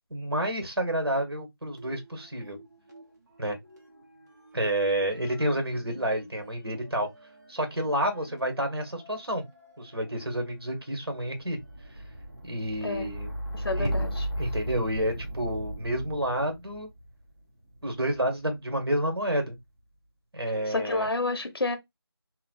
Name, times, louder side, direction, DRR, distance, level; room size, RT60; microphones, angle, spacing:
voice 1, 0.1-2.6 3.4-3.5 4.5-7.1 7.5-9.4 9.8-11.6 12.4-13.3 13.7-13.9 14.4-16.9 17.8-19.6 20.3-21.1, right 1 dB, 70° right, 1.4 m, -29 dB
sound 1, 1.7-3.1 3.3-18.4 19.1-19.7, equal, 40° right, 1.1 m, -38 dB
voice 2, 13.5-14.3 20.7-21.8, left 2 dB, 65° left, 0.8 m, -29 dB
3.0 x 2.3 x 2.5 m
figure-of-eight pair, 175°, 13 cm